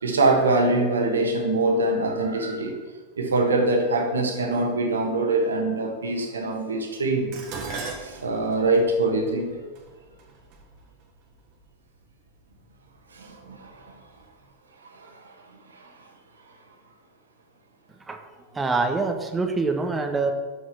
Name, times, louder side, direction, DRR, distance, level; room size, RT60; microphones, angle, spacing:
voice 1, 0.0-2.8 3.2-7.3 8.0-9.5 13.1-13.9 14.9-15.3 15.7-15.9, right 2 dB, 85° right, 3 dB, 1.5 m, -24 dB
Dishes pots and pans, 7.3-11.7 12.6-13.0 13.4-14.2 14.4-14.5, right 4 dB, 50° right, 1.6 m, -39 dB
voice 2, 18.5-20.3, right 3 dB, 15° right, 4 dB, 1.2 m, -25 dB
6.3 x 6.3 x 6.2 m, 1.4 s
hypercardioid pair, 95°, 0 cm